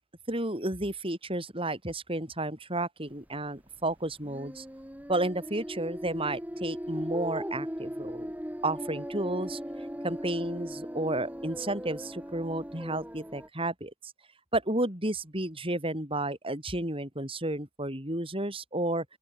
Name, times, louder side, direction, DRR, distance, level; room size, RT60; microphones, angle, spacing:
voice 1, 0.3-4.6 5.1-8.3 8.6-9.6 10.0-14.1 14.5-19.0, right 1 dB, 25° right, 6.3 m, -32 dB
sound 1, 4.2-13.5, equal, 5° right, 3.3 m, -38 dB
open air
head